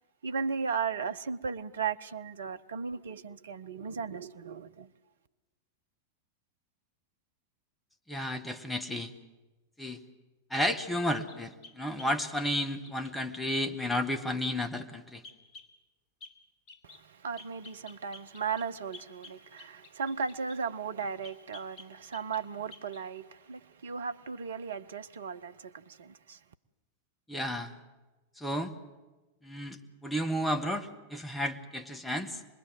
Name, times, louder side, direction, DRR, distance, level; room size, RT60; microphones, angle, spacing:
voice 1, 0.2-4.9 16.8-26.4, right 6 dB, 65° right, 0.9 m, -36 dB
voice 2, 8.1-9.1 9.8-10.0 10.5-15.2 27.3-27.8 28.4-28.7 29.4-32.4, left 1 dB, 5° left, 1.6 m, -32 dB
sound 1, 11.3-13.2 15.2-15.7 16.2-16.4 16.7-17.0 17.4-20.6 21.2-22.5 22.7-23.0, left 4 dB, 35° left, 2.6 m, -52 dB
25.5 x 21.0 x 8.0 m
figure-of-eight pair, 90°, 0 cm